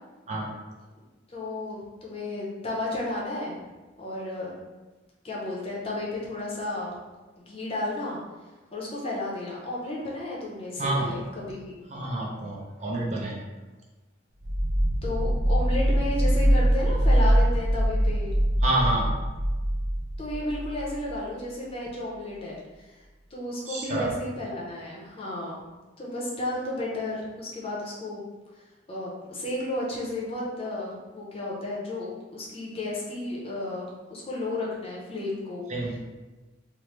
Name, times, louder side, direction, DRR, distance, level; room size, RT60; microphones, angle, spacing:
voice 1, 1.3-3.6 4.0-4.5 5.2-6.9 7.4-8.2 8.7-11.8 15.0-18.3 20.2-23.0 23.3-25.6 26.0-28.2 28.9-35.7, left 2 dB, 30° left, -4 dB, 0.6 m, -33 dB
voice 2, 10.8-11.2 11.9-13.4 18.6-19.1 23.7-24.1 35.7-36.0, right 1 dB, 35° right, -2 dB, 0.4 m, -28 dB
sound 1, 14.4-21.1, equal, 90° right, 0.6 m, -23 dB
3.0 x 2.0 x 3.1 m, 1.2 s
head